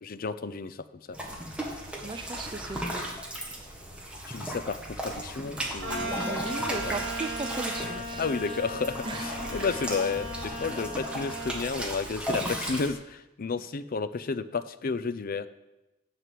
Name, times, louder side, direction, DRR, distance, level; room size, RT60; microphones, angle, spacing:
voice 1, 0.0-1.2 4.3-6.1 6.7-7.0 8.1-15.5, left 4 dB, 45° left, 14 dB, 0.5 m, -32 dB
sound 1, 1.1-12.9, right 1 dB, 5° right, 1.6 m, -36 dB
voice 2, 2.0-3.1 6.0-8.6 9.0-9.3 9.6-9.7, right 3 dB, 25° right, 7 dB, 0.5 m, -37 dB
sound 2, 5.8-11.6, equal, 65° right, 2.8 m, -37 dB
11.0 x 4.8 x 7.6 m, 1.0 s
head